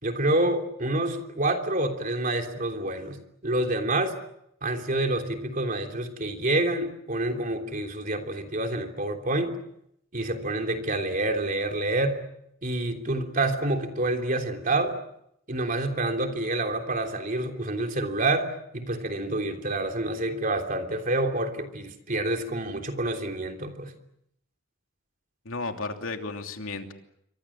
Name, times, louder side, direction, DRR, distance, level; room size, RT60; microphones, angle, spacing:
voice 1, 0.0-3.2 3.4-4.1 4.6-9.5 10.1-12.2 12.6-15.0 15.5-23.9, right 2 dB, 40° right, 4 dB, 3.3 m, -28 dB
voice 2, 25.4-26.9, left 3 dB, 90° left, 4 dB, 2.9 m, -33 dB
27.5 x 24.5 x 7.3 m, 0.76 s
head